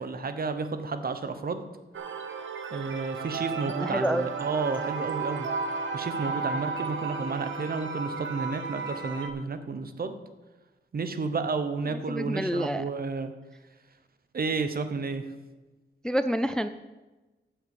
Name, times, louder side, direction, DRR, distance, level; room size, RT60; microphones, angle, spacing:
voice 1, 0.0-1.6 2.7-5.5 5.9-10.1 10.9-13.3 14.3-15.2, right 4 dB, 50° right, 9 dB, 0.9 m, -31 dB
sound 1, 1.9-9.3, right 5 dB, 85° right, 1.0 m, -34 dB
voice 2, 3.8-4.3 12.1-12.9 16.0-16.7, equal, 5° left, 11 dB, 0.3 m, -27 dB
7.7 x 6.8 x 7.1 m, 1.1 s
wide cardioid pair, 130°, 19 cm